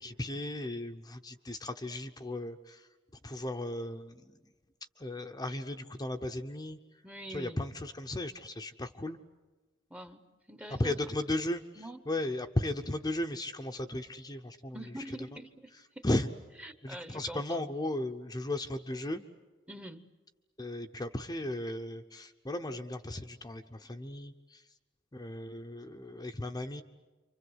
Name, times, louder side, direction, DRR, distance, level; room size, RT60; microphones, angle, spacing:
voice 1, 0.0-2.9 3.2-4.4 5.0-6.8 7.3-9.2 10.8-11.6 12.1-14.9 15.2-15.3 16.0-16.3 16.8-19.2 20.6-24.6 25.1-26.8, left 1 dB, 20° left, 4 dB, 0.8 m, -35 dB
voice 2, 7.0-7.6 9.9-11.1 11.8-12.0 14.7-16.0 16.6-17.6 19.7-20.1, right 1 dB, 5° right, 10 dB, 1.0 m, -45 dB
28.5 x 25.0 x 8.1 m, 1.2 s
head